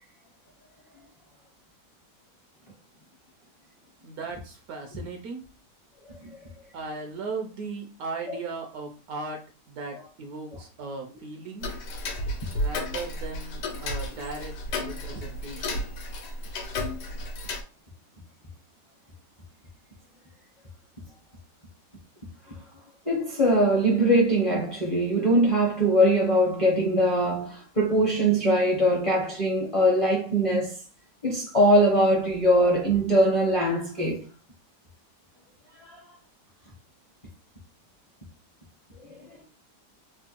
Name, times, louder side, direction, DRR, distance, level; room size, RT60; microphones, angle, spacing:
voice 1, 4.0-5.4 6.7-11.7 12.5-15.8, right 4 dB, 70° right, 0.9 m, -37 dB
Tick-tock, 11.6-17.6, left 1 dB, 80° left, 1.2 m, -33 dB
voice 2, 23.0-30.7 31.2-34.2 35.8-36.0 39.0-39.4, right 1 dB, 35° left, 0.5 m, -22 dB
3.4 x 2.2 x 2.9 m
omnidirectional pair, 1.8 m